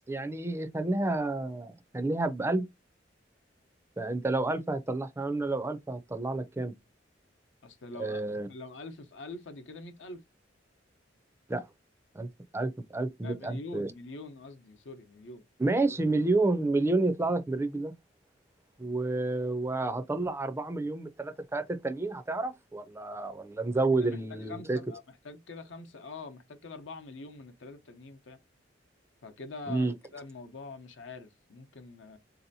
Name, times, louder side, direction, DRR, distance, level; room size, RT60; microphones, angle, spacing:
voice 1, 0.1-2.7 4.0-6.7 8.0-8.5 11.5-11.6 12.1-12.3 12.5-13.9 15.6-17.9 18.8-24.8 29.7-29.9, right 2 dB, 15° right, 0.4 m, -30 dB
voice 2, 7.6-10.2 13.2-15.4 24.0-24.2 24.5-28.4 29.2-32.2, left 3 dB, 80° left, 0.8 m, -44 dB
4.2 x 2.8 x 2.6 m
head